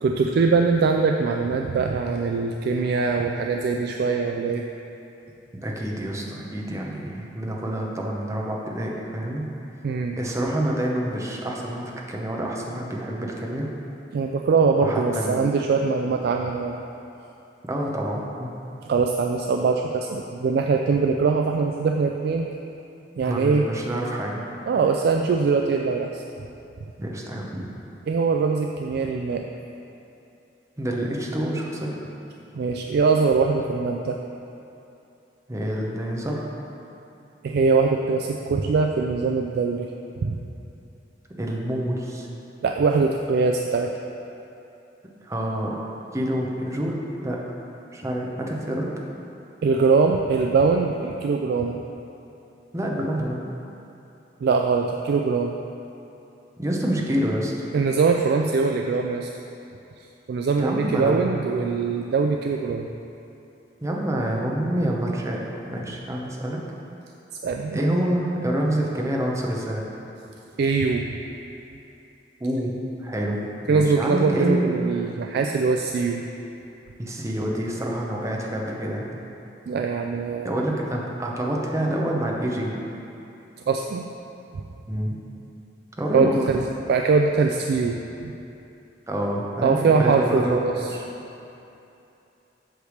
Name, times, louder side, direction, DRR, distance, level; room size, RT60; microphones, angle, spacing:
voice 1, 0.0-4.6 9.8-10.2 14.1-16.8 18.8-22.5 23.2-23.7 24.7-26.2 28.1-29.4 32.5-34.2 37.4-39.9 40.2-40.4 42.6-43.9 49.6-51.8 54.4-55.5 57.7-59.3 60.0-62.9 67.4-67.9 70.6-71.1 73.7-76.3 79.7-80.5 83.7-84.0 86.1-88.3 89.6-91.0, right 4 dB, 60° right, 2 dB, 0.3 m, -22 dB
voice 2, 5.6-9.5 10.2-13.7 14.8-15.5 17.7-18.5 23.2-24.5 27.0-27.6 30.8-32.0 35.5-36.5 41.4-42.3 45.2-45.8 46.1-47.0 47.2-47.4 47.9-48.9 52.7-53.5 56.6-57.5 60.6-61.3 63.8-66.6 67.7-69.9 72.4-72.7 73.0-73.4 73.6-74.7 77.0-79.1 80.4-82.7 84.9-85.2 86.0-86.4 89.1-91.0, right 1 dB, 15° right, -2 dB, 0.8 m, -27 dB
8.0 x 3.4 x 6.4 m, 2.8 s
head